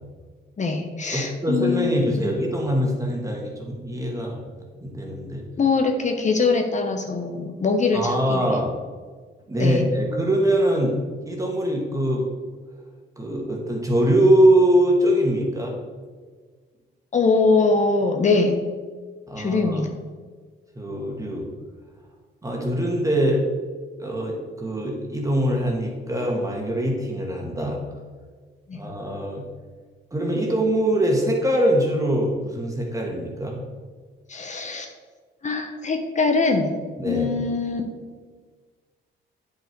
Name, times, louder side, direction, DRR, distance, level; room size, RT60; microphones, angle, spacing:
voice 1, 0.6-2.3 5.6-8.6 9.6-9.8 17.1-18.6 19.4-19.9 28.7-28.8 34.3-34.9 35.4-36.7 37.0-37.8, left 4 dB, 35° left, 4 dB, 1.0 m, -22 dB
voice 2, 1.1-4.4 4.8-5.5 7.9-8.7 9.5-11.0 11.3-12.3 13.2-15.7 19.3-19.8 20.8-21.5 22.4-23.4 24.0-27.8 28.7-29.5 30.1-33.6 37.0-37.3, right 1 dB, 15° right, -1 dB, 1.7 m, -22 dB
9.2 x 5.5 x 4.6 m, 1.5 s
cardioid pair, 90°, 20 cm